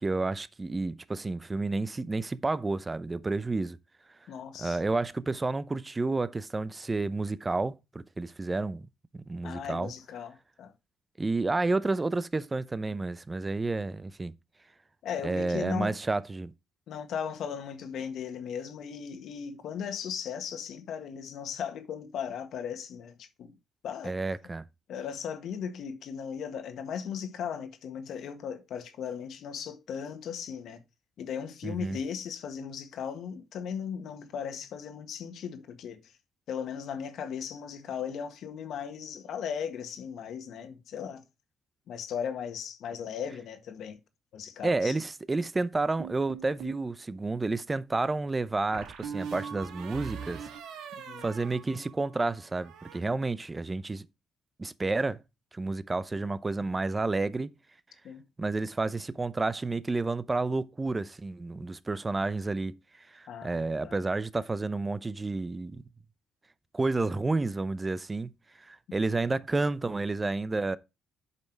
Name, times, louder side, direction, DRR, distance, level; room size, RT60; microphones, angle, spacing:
voice 1, 0.0-3.8 4.6-8.8 9.1-9.9 11.2-14.3 15.2-16.5 24.0-24.6 31.6-32.0 44.6-50.5 51.2-54.1 54.6-55.2 55.5-57.5 58.4-62.8 63.1-65.8 66.7-68.3 68.6-70.8, right 3 dB, 20° right, 0.6 m, -30 dB
voice 2, 4.3-4.8 9.4-10.7 15.0-15.9 16.9-23.5 23.8-24.1 24.9-30.8 31.2-36.0 36.5-41.2 41.9-44.0 44.3-44.9 51.1-51.2 58.0-58.2 63.3-64.0, left 7 dB, 75° left, 1.6 m, -37 dB
sound 1, 46.0-46.8 48.7-52.2 52.5-53.0, right 7 dB, 85° right, 1.5 m, -41 dB
8.2 x 5.4 x 4.6 m
cardioid pair, 90°, 0 cm